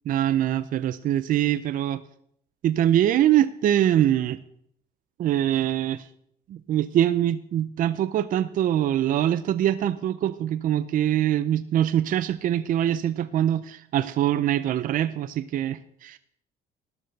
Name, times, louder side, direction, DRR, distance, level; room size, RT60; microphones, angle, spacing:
voice 1, 0.1-2.0 2.6-4.4 5.2-6.1 6.5-16.2, right 11 dB, 55° right, 14 dB, 0.5 m, -23 dB
13.0 x 11.0 x 4.1 m, 0.70 s
cardioid pair, 110°, 17 cm